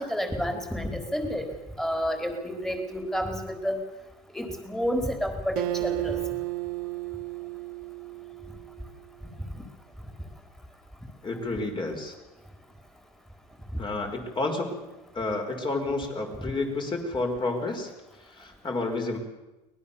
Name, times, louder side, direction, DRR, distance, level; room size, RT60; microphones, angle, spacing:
voice 1, 0.0-1.5 1.8-3.8 4.3-6.2 9.5-9.6 13.7-13.8 16.4-16.5, equal, ahead, 5 dB, 4.1 m, -30 dB
Acoustic guitar, 5.6-9.0, right 22 dB, 85° right, 0.7 m, -33 dB
voice 2, 11.2-12.2 13.8-14.8 15.1-17.9 18.3-19.2, left 2 dB, 25° left, 4 dB, 5.3 m, -30 dB
24.0 x 19.5 x 7.1 m, 1.0 s
supercardioid pair, 110°, 19 cm